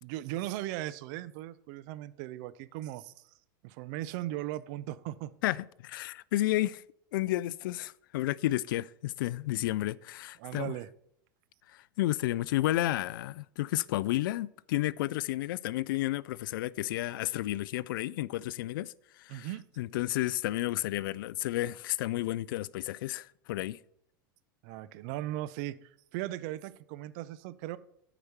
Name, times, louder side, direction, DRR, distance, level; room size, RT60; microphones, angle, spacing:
voice 1, 0.0-3.2 3.6-5.3 10.4-10.9 19.3-19.6 24.6-27.8, right 15 dB, 60° right, 0.6 m, -38 dB
voice 2, 5.8-6.8 7.1-10.7 12.0-18.9 19.2-19.5 19.8-23.8, left 16 dB, 70° left, 0.4 m, -31 dB
8.8 x 5.0 x 6.7 m
hypercardioid pair, 100°, 12 cm